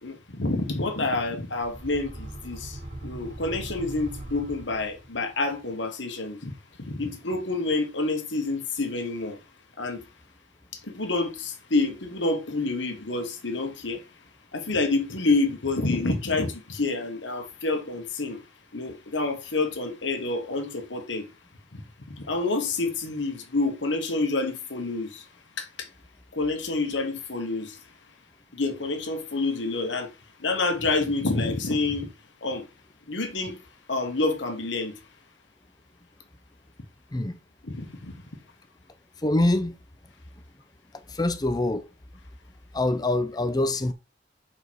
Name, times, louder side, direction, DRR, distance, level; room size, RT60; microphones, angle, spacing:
voice 1, 0.0-2.8 3.0-6.5 6.9-9.4 9.8-10.0 10.9-14.0 14.5-18.4 18.7-21.2 21.7-21.8 22.3-25.2 25.6-25.7 26.4-27.8 28.5-30.1 30.4-32.1 32.4-32.6 33.1-33.6 33.9-34.9 37.6-38.1, left 3 dB, 85° left, 1.4 m, -28 dB
sound 1, 1.5-5.3, right 1 dB, 65° right, 2.3 m, -40 dB
voice 2, 39.2-39.7 41.1-41.9 42.7-43.9, left 2 dB, 20° left, 0.6 m, -24 dB
5.0 x 4.3 x 4.6 m
head